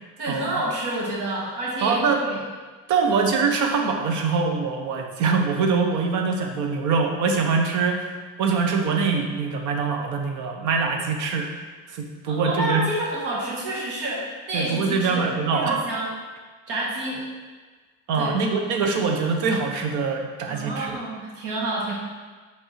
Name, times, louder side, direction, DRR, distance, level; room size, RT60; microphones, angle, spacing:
voice 1, 0.2-2.4 12.3-16.1 16.7-17.2 18.2-18.4 20.5-21.9, right 1 dB, 90° right, -4 dB, 1.9 m, -29 dB
voice 2, 1.8-2.2 2.9-8.1 8.4-11.5 11.9-12.9 14.5-15.8 18.1-20.9, right 5 dB, 70° right, 3 dB, 1.0 m, -23 dB
5.6 x 3.6 x 5.8 m, 1.4 s
cardioid pair, 160°, 31 cm